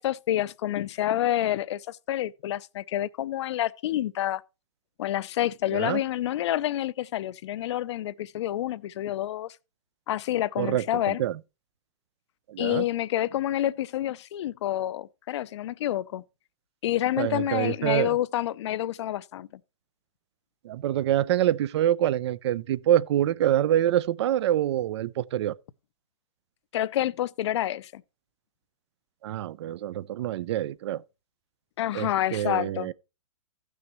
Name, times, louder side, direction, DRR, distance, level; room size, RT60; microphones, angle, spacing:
voice 1, 0.0-4.4 5.0-9.6 10.1-11.2 12.6-16.2 16.8-19.5 26.7-28.0 31.8-32.9, left 13 dB, 50° left, 0.5 m, -28 dB
voice 2, 10.6-11.3 12.5-12.8 17.2-18.2 20.6-25.5 29.2-31.0 31.9-32.9, right 12 dB, 50° right, 0.4 m, -26 dB
15.0 x 6.2 x 3.0 m
hypercardioid pair, 135°, 18 cm